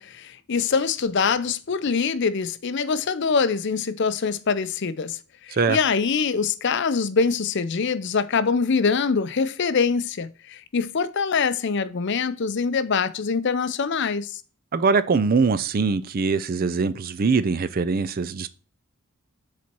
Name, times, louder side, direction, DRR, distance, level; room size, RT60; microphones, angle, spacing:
voice 1, 0.0-14.4, left 5 dB, 50° left, 0.5 m, -24 dB
voice 2, 14.7-18.5, right 4 dB, 40° right, 0.4 m, -22 dB
7.4 x 4.2 x 4.4 m
head